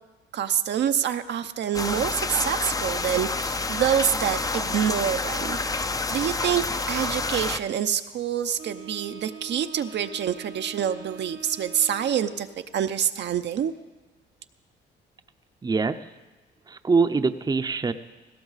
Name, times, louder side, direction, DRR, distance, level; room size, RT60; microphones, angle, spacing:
voice 1, 0.3-12.5 12.7-13.7, right 9 dB, 60° right, 8 dB, 0.7 m, -26 dB
sound 1, 1.7-7.6, left 3 dB, 20° left, 0.5 m, -28 dB
Wind instrument woodwind instrument, 8.6-12.7, right 5 dB, 85° right, 2.0 m, -43 dB
voice 2, 15.6-16.0 16.7-17.9, right 4 dB, 20° right, 9 dB, 0.7 m, -23 dB
17.5 x 17.0 x 4.1 m, 1.2 s
cardioid pair, 90°, 20 cm